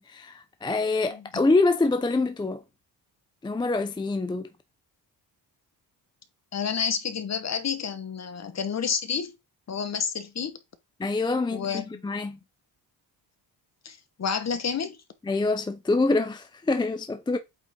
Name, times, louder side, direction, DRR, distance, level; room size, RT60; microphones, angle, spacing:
voice 1, 0.0-2.6 3.4-4.5 11.0-12.4 15.3-17.4, left 3 dB, 10° left, 0.4 m, -25 dB
voice 2, 1.1-1.4 6.5-9.4 9.7-10.6 11.5-12.0 13.8-15.0, left 6 dB, 35° left, 1.1 m, -30 dB
8.3 x 4.0 x 3.6 m
cardioid pair, 110°, 44 cm